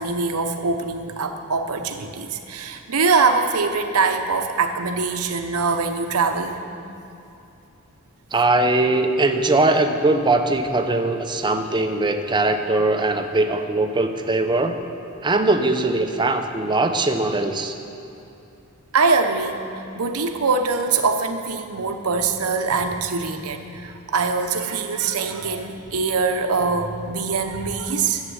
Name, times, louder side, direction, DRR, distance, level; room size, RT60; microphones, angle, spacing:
voice 1, 0.0-6.6 18.9-28.2, right 4 dB, 85° right, 6 dB, 0.9 m, -23 dB
voice 2, 8.3-14.8 15.2-17.7, right 2 dB, 20° right, 6 dB, 0.7 m, -20 dB
11.0 x 7.4 x 8.0 m, 2.7 s
head